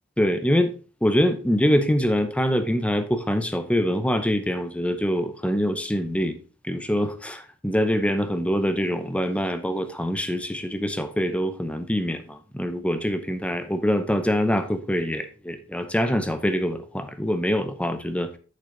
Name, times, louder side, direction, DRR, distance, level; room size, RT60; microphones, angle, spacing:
voice 1, 0.2-0.7 1.0-6.4 6.6-7.1 7.6-18.4, equal, 5° left, 0.7 m, -24 dB
8.8 x 6.8 x 3.9 m
head